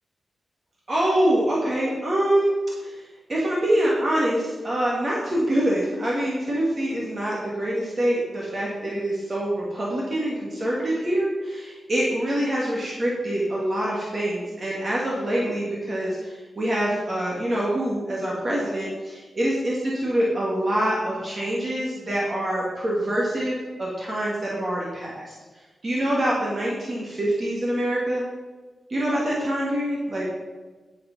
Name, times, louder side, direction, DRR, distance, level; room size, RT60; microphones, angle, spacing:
voice 1, 0.9-2.5 2.8-3.0 3.3-25.3 25.8-28.2 28.9-30.3, right 1 dB, 35° right, -5 dB, 2.1 m, -25 dB
10.5 x 6.7 x 5.4 m, 1.3 s
wide cardioid pair, 145°, 0 cm